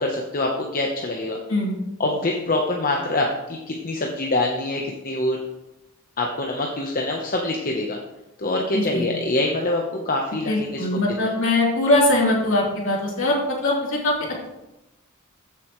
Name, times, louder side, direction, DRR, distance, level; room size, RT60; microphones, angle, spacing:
voice 1, 0.0-1.4 2.0-5.4 6.2-8.0 8.4-11.3, left 2 dB, 40° left, 0 dB, 0.9 m, -25 dB
voice 2, 8.7-9.1 10.5-14.2, left 1 dB, 65° left, -3 dB, 3.2 m, -21 dB
14.5 x 6.9 x 3.1 m, 0.96 s
head